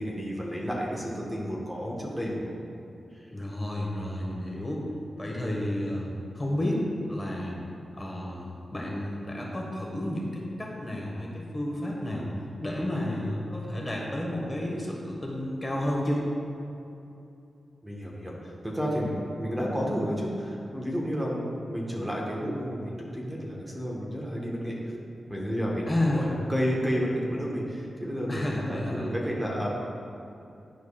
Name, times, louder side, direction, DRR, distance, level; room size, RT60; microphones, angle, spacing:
voice 1, 0.0-2.5 3.1-3.2 17.8-24.8 25.3-25.9 26.1-29.7, equal, 15° right, -4 dB, 1.3 m, -31 dB
voice 2, 3.3-4.9 5.2-6.1 6.3-7.6 8.0-12.3 12.6-16.3 25.9-26.3 28.3-29.1, left 1 dB, 25° left, -2 dB, 1.4 m, -31 dB
11.0 x 4.6 x 2.4 m, 2.8 s
cardioid pair, 50°, 0 cm